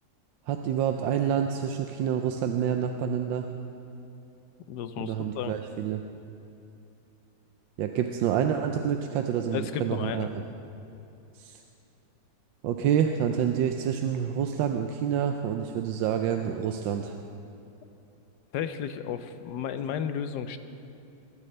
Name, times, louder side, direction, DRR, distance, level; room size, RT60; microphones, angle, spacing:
voice 1, 0.5-3.5 5.0-6.0 7.8-10.3 11.4-11.6 12.6-17.2, right 8 dB, 90° right, 5 dB, 1.3 m, -28 dB
voice 2, 4.7-5.6 9.5-10.3 18.5-20.6, left 8 dB, 70° left, 10 dB, 1.1 m, -33 dB
21.0 x 12.0 x 3.3 m, 2.8 s
omnidirectional pair, 2.0 m